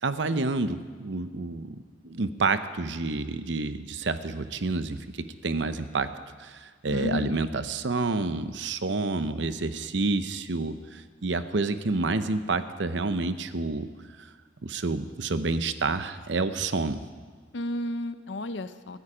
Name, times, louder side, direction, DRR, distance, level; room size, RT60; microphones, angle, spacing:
voice 1, 0.0-6.1 6.4-13.9 14.2-14.3 14.6-17.0, right 3 dB, 65° right, 11 dB, 0.7 m, -29 dB
voice 2, 6.9-7.4 17.5-19.0, left 1 dB, 70° left, 12 dB, 0.7 m, -32 dB
15.5 x 14.5 x 5.0 m, 1.5 s
head